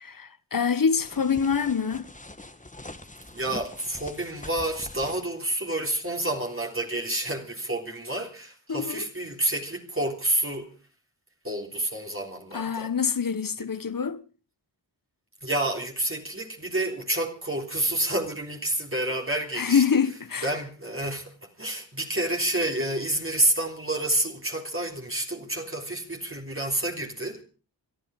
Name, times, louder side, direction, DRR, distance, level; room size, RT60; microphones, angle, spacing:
voice 1, 0.0-2.1 8.7-9.1 12.5-14.2 19.6-20.5, left 6 dB, 50° left, 1.2 m, -25 dB
sound 1, 1.0-5.3, left 2 dB, 20° left, 1.8 m, -43 dB
voice 2, 3.3-10.7 11.4-12.9 15.4-19.8 20.4-27.4, right 1 dB, 30° right, 3.4 m, -29 dB
22.5 x 12.5 x 4.8 m
cardioid pair, 40°, 43 cm